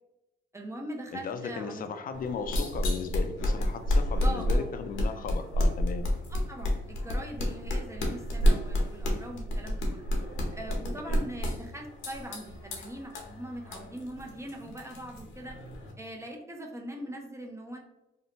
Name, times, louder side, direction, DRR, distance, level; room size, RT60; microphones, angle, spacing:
voice 1, 0.5-1.8 4.2-4.7 6.3-10.0 10.5-15.6 16.0-17.8, right 1 dB, 15° right, 1 dB, 0.4 m, -41 dB
voice 2, 1.1-6.1 11.1-11.2, left 5 dB, 45° left, 8 dB, 0.4 m, -36 dB
sound 1, 2.1-15.9, equal, 80° left, 0.7 m, -30 dB
2.7 x 2.1 x 2.8 m, 0.96 s
cardioid pair, 90°, 20 cm